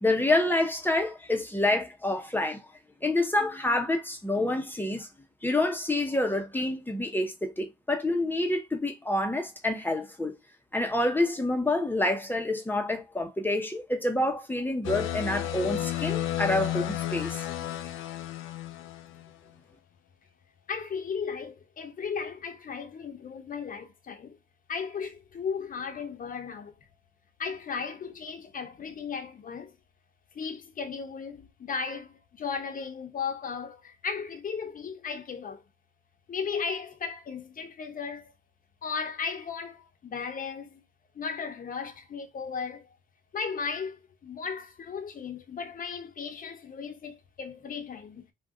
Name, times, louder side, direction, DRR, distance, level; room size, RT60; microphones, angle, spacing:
voice 1, 0.0-2.6 3.0-5.1 5.4-10.3 10.7-17.4, left 2 dB, 10° left, 0.6 m, -27 dB
sound 1, 14.8-19.3, left 12 dB, 75° left, 0.4 m, -32 dB
voice 2, 20.7-24.4 24.7-26.7 27.4-29.8 30.3-35.6 36.3-38.3 38.8-40.8 41.1-42.9 43.3-48.3, left 5 dB, 45° left, 0.7 m, -36 dB
2.5 x 2.2 x 3.6 m
cardioid pair, 90°, 20 cm